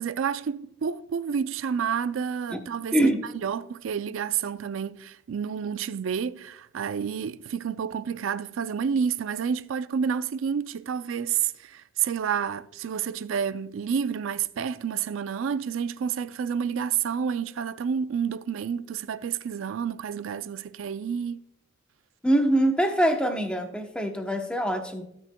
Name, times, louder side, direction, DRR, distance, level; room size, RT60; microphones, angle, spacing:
voice 1, 0.0-21.4, right 7 dB, 80° right, 0.4 m, -29 dB
voice 2, 22.2-25.0, right 1 dB, 5° left, 0.8 m, -24 dB
18.0 x 6.3 x 2.2 m
head